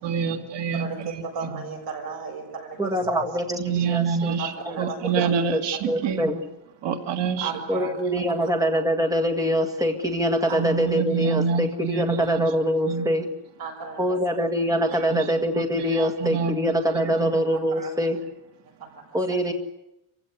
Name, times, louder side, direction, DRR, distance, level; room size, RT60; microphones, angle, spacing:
voice 1, 0.0-0.9 1.1-1.2 3.6-6.3 6.8-7.5 8.1-8.3 10.5-12.4 12.9-13.1 15.1-15.3 15.5-16.5 16.9-17.4, right 6 dB, 70° right, 6 dB, 2.3 m, -27 dB
voice 2, 0.7-2.8 4.4-5.0 5.2-5.3 7.4-7.9 8.4-8.5 10.5-10.6 13.6-14.0 14.9-15.0 17.7-17.9 18.8-19.0, right 5 dB, 55° right, 2 dB, 7.1 m, -34 dB
voice 3, 2.8-4.4 4.7-4.9 5.5-5.6 5.9-6.4 7.7-13.3 14.0-18.2 19.1-19.5, equal, 10° right, 3 dB, 1.9 m, -24 dB
26.0 x 16.0 x 9.7 m, 0.90 s
cardioid pair, 180°, 44 cm